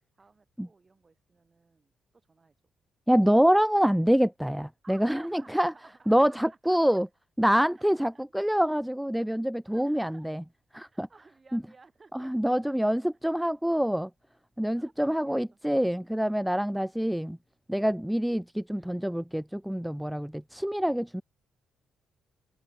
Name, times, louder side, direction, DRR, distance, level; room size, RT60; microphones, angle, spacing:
voice 1, 0.1-2.6 4.8-7.0 7.7-8.3 9.7-10.3 10.8-13.0 13.4-14.1 14.7-15.6 18.8-19.2, right 4 dB, 30° right, 6.0 m, -58 dB
voice 2, 3.1-5.7 6.1-7.1 7.4-10.4 10.7-11.1 11.5-11.6 12.1-14.1 14.6-17.4 17.7-21.2, equal, 5° right, 0.5 m, -26 dB
cardioid pair, 90°, 0 cm